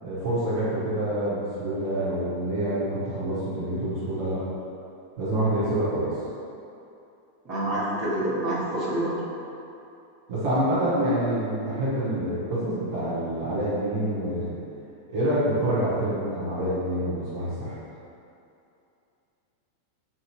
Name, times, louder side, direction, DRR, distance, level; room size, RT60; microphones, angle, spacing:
voice 1, 0.0-4.4 5.2-6.1 10.3-14.5 15.1-17.7, right 1 dB, 55° right, -10 dB, 1.0 m, -27 dB
voice 2, 7.4-9.1, right 1 dB, 30° right, -10 dB, 1.2 m, -27 dB
4.5 x 2.8 x 3.0 m, 2.7 s
figure-of-eight pair, 90°, 0 cm